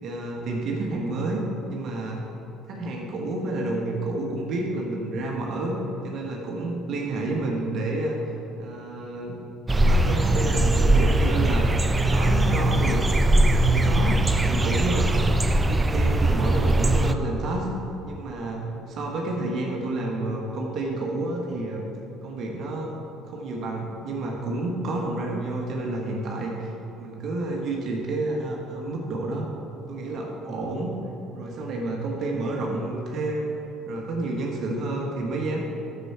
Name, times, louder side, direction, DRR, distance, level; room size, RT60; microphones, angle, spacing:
voice 1, 0.0-2.2 2.7-5.8 6.0-9.4 9.8-13.1 13.5-14.2 14.5-15.2 15.7-17.7 18.0-21.9 22.2-22.9 23.3-29.5 29.9-30.9 31.3-33.6 33.9-35.6, right 2 dB, 55° right, -1 dB, 1.4 m, -30 dB
sound 1, 9.7-17.1, right 1 dB, 20° right, 0.5 m, -21 dB
9.9 x 7.0 x 4.5 m, 3.0 s
hypercardioid pair, 60°, 0 cm